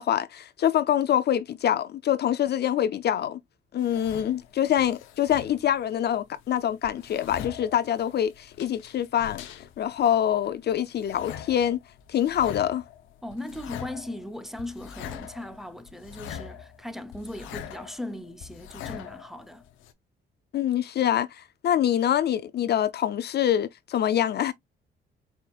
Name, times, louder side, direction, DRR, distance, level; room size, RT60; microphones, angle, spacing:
voice 1, 0.0-3.4 3.7-9.4 9.8-11.8 12.1-12.8 20.5-24.5, left 10 dB, 55° left, 0.5 m, -25 dB
sound 1, 3.8-5.8 6.1-19.9, left 9 dB, 90° left, 0.8 m, -43 dB
voice 2, 13.2-19.6, left 1 dB, ahead, 0.7 m, -38 dB
4.8 x 4.3 x 2.4 m
cardioid pair, 90°, 20 cm